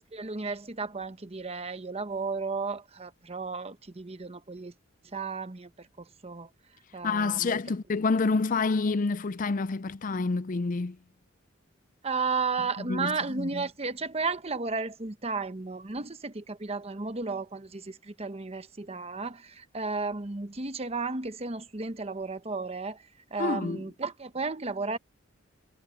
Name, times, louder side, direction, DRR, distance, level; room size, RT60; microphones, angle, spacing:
voice 1, 0.1-4.7 5.1-6.5 6.9-7.6 12.0-23.0 23.3-25.0, right 4 dB, 30° right, 0.9 m, -33 dB
voice 2, 7.0-11.0 12.8-13.6 23.4-23.8, left 4 dB, 40° left, 0.5 m, -28 dB
head